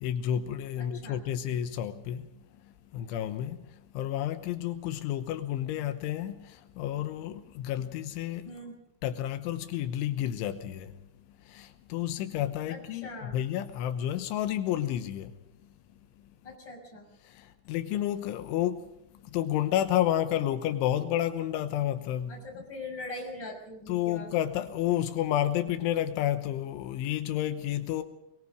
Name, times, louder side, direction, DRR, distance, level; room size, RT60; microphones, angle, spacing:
voice 1, 0.0-2.2 2.9-3.6 4.0-6.4 6.8-8.5 9.0-10.9 11.5-15.3 17.7-18.8 19.3-22.3 23.9-28.0, left 11 dB, 85° left, 3.5 m, -30 dB
voice 2, 0.8-1.2 8.5-8.8 12.7-13.4 16.4-17.1 22.3-24.3, left 2 dB, 25° left, 6.6 m, -42 dB
22.5 x 22.5 x 5.1 m
omnidirectional pair, 5.4 m